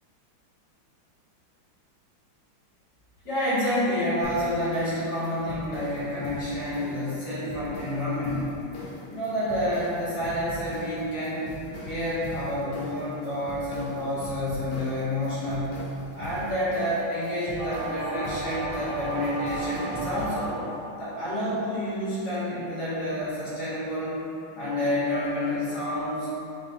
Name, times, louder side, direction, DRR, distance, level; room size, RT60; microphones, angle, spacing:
voice 1, 3.2-8.5 9.1-11.5 11.8-15.8 16.1-20.6 21.0-24.2 24.5-26.3, left 1 dB, 50° left, -12 dB, 1.9 m, -29 dB
sound 1, 4.2-20.2, left 1 dB, 80° left, 1.6 m, -41 dB
sound 2, 17.6-21.1, right 2 dB, 65° right, 1.3 m, -34 dB
5.7 x 2.3 x 2.7 m, 2.9 s
omnidirectional pair, 2.4 m